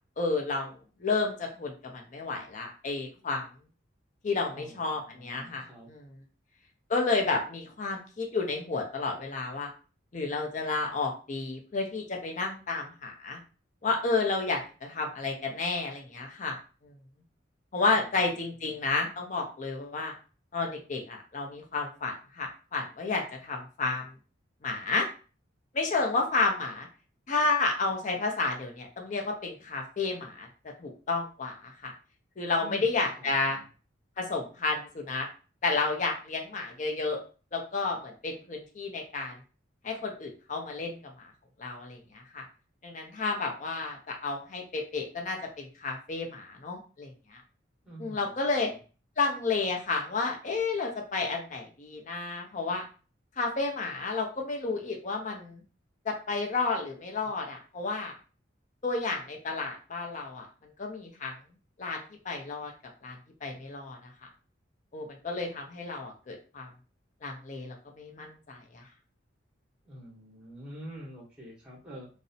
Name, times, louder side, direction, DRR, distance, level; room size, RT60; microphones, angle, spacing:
voice 1, 0.2-0.7 1.0-3.5 4.2-6.1 6.9-9.7 10.1-13.4 13.8-16.6 16.8-16.9 17.7-20.1 20.5-24.0 24.6-25.1 25.7-26.9 27.3-30.5 30.8-31.9 32.4-33.6 34.2-35.3 35.6-37.2 37.5-39.3 39.8-41.3 41.6-42.5 42.8-47.4 48.0-48.7 49.2-52.8 53.4-55.6 56.0-58.1 58.8-61.3 61.8-62.7 63.0-63.2 63.4-64.0 64.9-66.7 67.2-68.8, left 3 dB, 40° left, 2 dB, 0.5 m, -31 dB
voice 2, 4.5-5.9 18.0-18.2 18.6-18.8 32.6-33.7 47.8-48.4 48.6-48.8 69.8-72.1, right 1 dB, 5° right, -4 dB, 0.8 m, -47 dB
2.6 x 2.0 x 2.6 m, 0.36 s
head